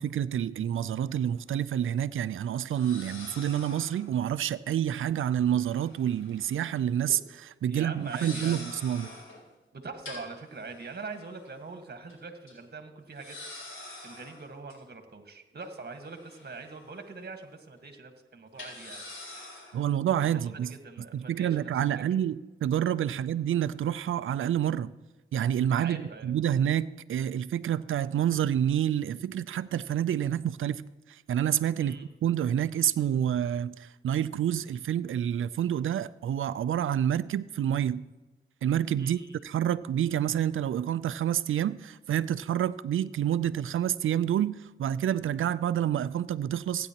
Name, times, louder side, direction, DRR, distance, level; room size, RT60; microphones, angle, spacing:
voice 1, 0.0-9.1 19.7-20.7 21.1-24.9 25.3-32.0 32.2-38.0 38.6-46.9, right 10 dB, 80° right, 0.4 m, -28 dB
sound 1, 1.1-1.2 2.7-4.1 5.5-6.7 6.9-7.2 8.0-9.4 10.0-11.7 12.1-12.2 12.5-12.6 13.1-14.7 15.6-17.0 17.4-17.5 18.5-19.9, left 2 dB, 80° left, 3.3 m, -46 dB
voice 2, 7.7-8.7 9.7-13.4 13.6-19.0 19.3-19.8 20.2-22.0 25.8-26.3 31.8-32.1 39.0-39.4, right 4 dB, 50° right, 1.5 m, -43 dB
16.0 x 9.5 x 2.9 m
cardioid pair, 55°, 20 cm